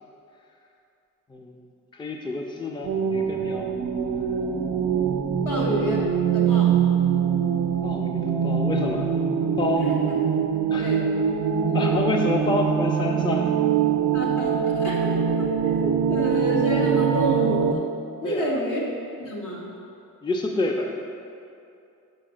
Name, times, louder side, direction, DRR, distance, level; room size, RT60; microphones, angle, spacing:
voice 1, 1.9-3.7 7.8-9.1 9.6-9.9 10.7-10.9 11.7-13.5 18.2-18.6 20.2-21.0, left 2 dB, 15° left, 2 dB, 0.5 m, -28 dB
sound 1, 2.8-17.7, right 7 dB, 75° right, 0.5 m, -23 dB
voice 2, 5.4-6.0 6.3-6.8 9.7-10.1 10.8-11.1 11.7-12.0 14.1-17.8 18.2-18.8 19.2-19.7, equal, 70° left, -4 dB, 1.9 m, -29 dB
6.5 x 5.3 x 6.3 m, 2.6 s
cardioid pair, 110°, 33 cm